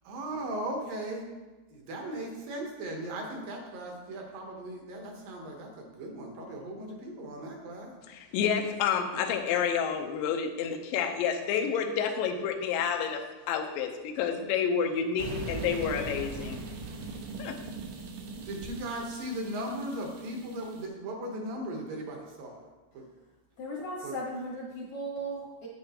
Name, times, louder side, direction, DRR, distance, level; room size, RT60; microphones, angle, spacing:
voice 1, 0.0-1.2 1.7-7.9 9.1-9.2 18.5-22.7 22.9-23.0 24.0-24.1, right 1 dB, 70° right, 1 dB, 2.4 m, -37 dB
voice 2, 8.1-13.2 13.5-16.6 17.4-17.6, left 7 dB, 80° left, 3 dB, 2.1 m, -29 dB
sound 1, 15.2-20.8, right 3 dB, 85° right, 3.3 m, -40 dB
voice 3, 23.6-25.7, right 1 dB, 65° left, -4 dB, 1.8 m, -37 dB
9.2 x 8.9 x 2.9 m, 1.2 s
omnidirectional pair, 4.8 m